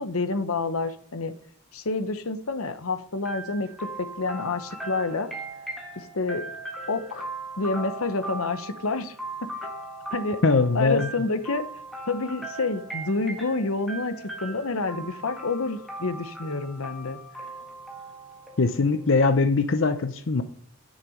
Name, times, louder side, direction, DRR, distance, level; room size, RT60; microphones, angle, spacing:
voice 1, 0.0-1.3 1.7-5.3 6.0-6.4 6.9-7.3 7.6-9.1 9.4-9.5 10.1-10.4 10.7-11.6 12.1-14.1 14.4-17.2, left 3 dB, 75° left, 10 dB, 0.9 m, -28 dB
sound 1, 3.2-19.0, right 2 dB, ahead, 1.6 m, -39 dB
voice 2, 10.4-11.1 18.6-20.4, left 3 dB, 55° left, 9 dB, 0.6 m, -21 dB
9.9 x 6.8 x 5.0 m, 0.62 s
head